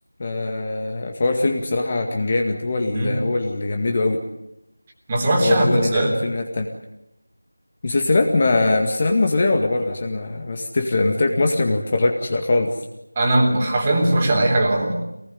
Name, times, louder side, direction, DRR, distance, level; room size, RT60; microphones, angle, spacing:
voice 1, 0.2-4.2 5.4-6.7 7.8-12.7, left 2 dB, 25° left, 4 dB, 2.0 m, -21 dB
voice 2, 5.1-6.1 13.2-15.0, right 1 dB, 15° right, 1 dB, 3.4 m, -19 dB
24.5 x 19.5 x 9.4 m, 0.84 s
figure-of-eight pair, 175°, 0 cm